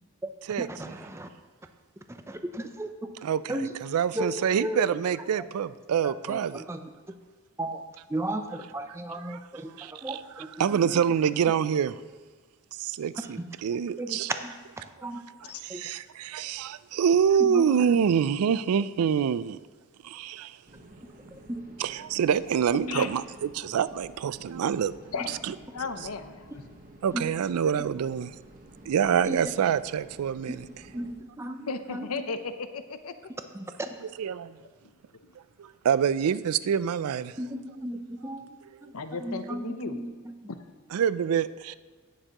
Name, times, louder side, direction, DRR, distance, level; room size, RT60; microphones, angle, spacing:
voice 1, 0.6-1.3 2.3-2.9 3.5-3.7 4.1-4.8 5.4-5.5 6.0-6.8 7.6-7.8 8.1-10.5 10.8-11.0 13.2-13.5 14.0-14.5 15.0-15.2 15.7-15.9 17.4-18.2 21.3-21.6 22.8-23.1 27.1-27.2 27.7-27.9 29.2-29.4 30.5-30.6 30.9-32.2 33.5-33.9 37.4-38.9 39.2-40.3, right 1 dB, 10° right, 7 dB, 0.5 m, -35 dB
voice 2, 3.8-6.6 9.3-9.4 9.8-10.2 10.6-12.0 12.8-14.3 15.6-19.6 20.0-20.5 21.8-24.9 25.4-25.5 27.0-28.3 28.9-30.6 34.2-34.5 35.8-37.3 40.9-41.7, right 8 dB, 85° right, 16 dB, 0.3 m, -26 dB
sound 1, 20.7-31.1, right 1 dB, 35° right, 1.1 m, -51 dB
voice 3, 25.7-26.7 31.7-33.2 38.9-40.0 40.5-40.6, left 4 dB, 80° left, 9 dB, 0.7 m, -35 dB
17.5 x 6.7 x 2.9 m, 1.4 s
head